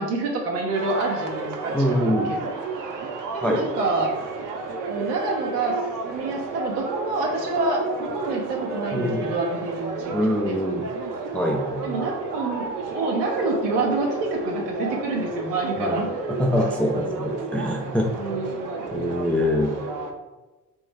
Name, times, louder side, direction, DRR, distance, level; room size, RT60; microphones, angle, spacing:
voice 1, 0.0-2.5 3.3-4.1 4.9-5.8 6.0-10.2 10.5-10.6 11.8-16.1 18.1-18.8, right 2 dB, 75° right, 0 dB, 1.1 m, -27 dB
sound 1, 0.7-20.1, right 4 dB, 40° right, 0.8 m, -32 dB
voice 2, 1.7-2.3 3.4-3.6 8.9-9.3 10.1-10.9 11.3-11.8 15.8-16.0 16.4-18.1 18.9-19.7, left 1 dB, 5° left, 0 dB, 0.4 m, -24 dB
3.7 x 3.0 x 3.4 m, 1.1 s
figure-of-eight pair, 60°, 49 cm